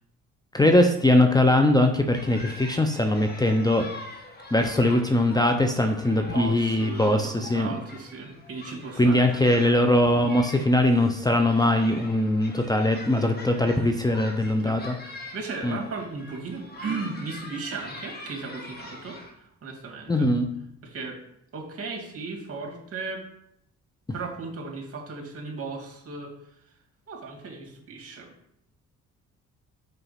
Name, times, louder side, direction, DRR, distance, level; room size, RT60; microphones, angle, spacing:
voice 1, 0.5-3.9 4.5-7.8 9.0-14.9 15.6-15.8 20.1-20.5, left 1 dB, 15° left, 5 dB, 0.7 m, -21 dB
sound 1, 2.1-19.3, left 2 dB, 30° left, 1.8 m, -43 dB
voice 2, 6.2-9.8 14.6-14.8 15.0-20.3 20.8-21.2 21.5-23.2 24.1-26.3 27.1-28.3, right 4 dB, 50° right, 0 dB, 2.5 m, -36 dB
5.7 x 5.2 x 5.7 m, 0.75 s
cardioid pair, 90°, 30 cm